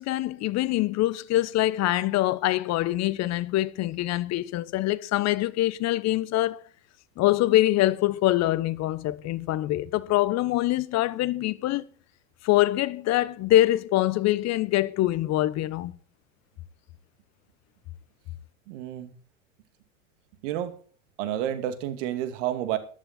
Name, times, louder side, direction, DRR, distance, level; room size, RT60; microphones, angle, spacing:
voice 1, 0.0-6.6 7.2-11.8 12.4-16.0, left 15 dB, 40° left, 1.1 m, -24 dB
voice 2, 18.7-19.1 20.4-20.8 21.2-22.8, right 11 dB, 60° right, 2.4 m, -30 dB
14.0 x 11.5 x 4.3 m
hypercardioid pair, 90°, 40 cm